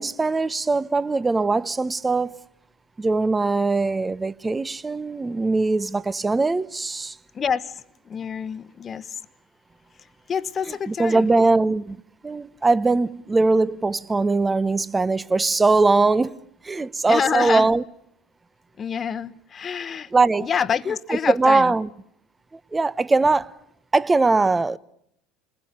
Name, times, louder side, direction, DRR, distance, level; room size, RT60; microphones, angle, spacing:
voice 1, 0.0-2.4 3.0-7.2 10.9-12.0 12.2-16.4 16.6-17.8 20.1-20.5 21.1-21.9 22.7-23.5 23.9-24.8, right 3 dB, 15° right, 0.9 m, -21 dB
voice 2, 7.3-9.2 10.3-11.6 17.1-17.7 18.8-20.1 20.4-21.7, left 7 dB, 35° left, 1.2 m, -27 dB
30.0 x 21.5 x 6.7 m
hypercardioid pair, 75°, 0 cm